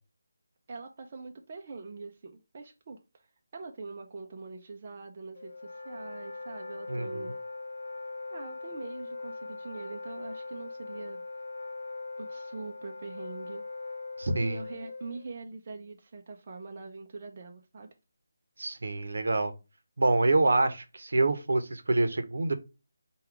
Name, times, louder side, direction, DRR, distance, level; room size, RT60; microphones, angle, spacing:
voice 1, 0.7-7.4 8.3-11.2 12.2-13.7 14.4-17.9, right 3 dB, 30° right, 0.4 m, -43 dB
Wind instrument woodwind instrument, 5.3-15.3, left 3 dB, 75° left, 0.6 m, -41 dB
voice 2, 6.9-7.2 14.2-14.6 18.6-19.5 20.0-22.6, right 2 dB, 70° right, 0.7 m, -26 dB
4.5 x 2.3 x 3.6 m
figure-of-eight pair, 170°, 0 cm